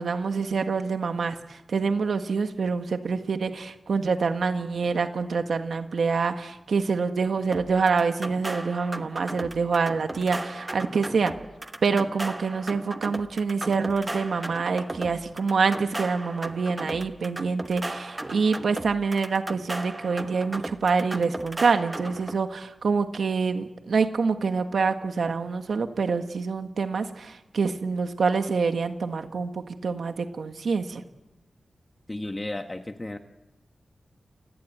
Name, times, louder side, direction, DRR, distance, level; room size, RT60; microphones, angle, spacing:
voice 1, 0.0-11.3 11.8-31.0, right 4 dB, 70° right, 7 dB, 1.6 m, -26 dB
sound 1, 7.5-22.4, right 2 dB, 20° right, 1.1 m, -36 dB
voice 2, 32.1-33.2, left 2 dB, 20° left, 5 dB, 1.2 m, -33 dB
29.0 x 17.5 x 9.0 m, 1.0 s
wide cardioid pair, 130°, 0 cm